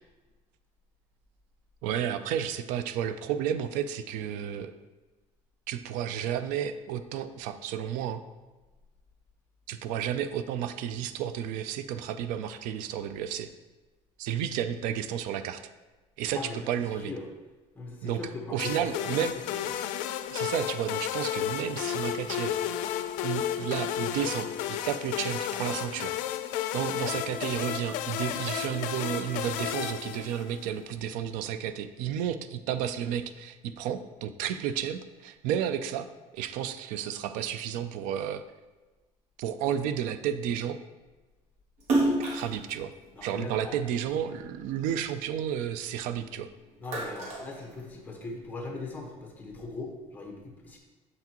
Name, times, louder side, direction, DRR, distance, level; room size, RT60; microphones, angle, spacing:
voice 1, 1.8-4.7 5.7-8.2 9.7-13.5 14.2-15.6 16.2-17.1 18.0-18.2 18.5-19.3 20.3-22.6 23.2-26.1 26.7-36.1 36.3-38.4 39.4-40.8 42.3-42.9 43.2-46.5, right 9 dB, 90° right, 11 dB, 0.4 m, -32 dB
voice 2, 17.7-19.3 19.6-19.7 43.1-43.8 46.8-50.8, left 3 dB, 15° left, 0 dB, 1.2 m, -40 dB
sound 1, 18.6-30.8, left 11 dB, 75° left, 0.4 m, -33 dB
Splash splatter, 41.8-44.4 44.8-46.3 46.6-48.3, right 2 dB, 60° right, 1.4 m, -30 dB
7.7 x 5.9 x 3.0 m, 1.2 s
cardioid pair, 165°, 13 cm